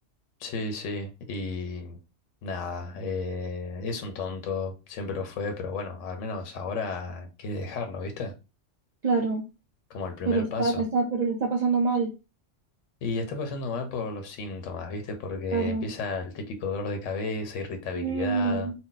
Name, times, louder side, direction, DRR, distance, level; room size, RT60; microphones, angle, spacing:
voice 1, 0.4-2.0 2.4-8.3 9.9-10.8 13.0-18.7, left 3 dB, 80° left, 1.0 m, -33 dB
voice 2, 9.0-9.5 10.3-12.1 15.5-15.9 18.0-18.7, right 4 dB, 60° right, 0.4 m, -26 dB
2.6 x 2.1 x 3.8 m
omnidirectional pair, 1.3 m